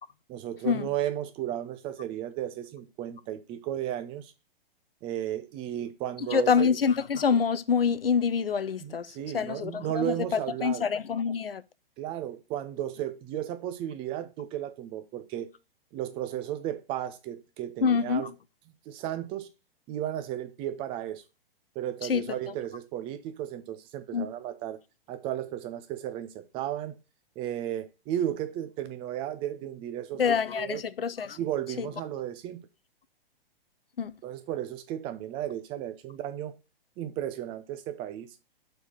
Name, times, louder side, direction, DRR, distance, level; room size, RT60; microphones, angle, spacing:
voice 1, 0.3-4.3 5.0-6.7 8.8-10.9 12.0-15.5 15.9-18.3 18.9-19.5 19.9-21.2 21.8-24.8 25.1-27.0 27.4-30.8 31.4-32.6 34.2-36.5 37.0-38.3, right 11 dB, 20° right, 0.6 m, -34 dB
voice 2, 6.2-11.6 17.8-18.3 22.0-22.5 24.1-24.3 30.2-31.4 31.8-31.9 34.0-34.1, left 6 dB, 75° left, 0.6 m, -26 dB
4.5 x 4.4 x 5.7 m
figure-of-eight pair, 115°, 29 cm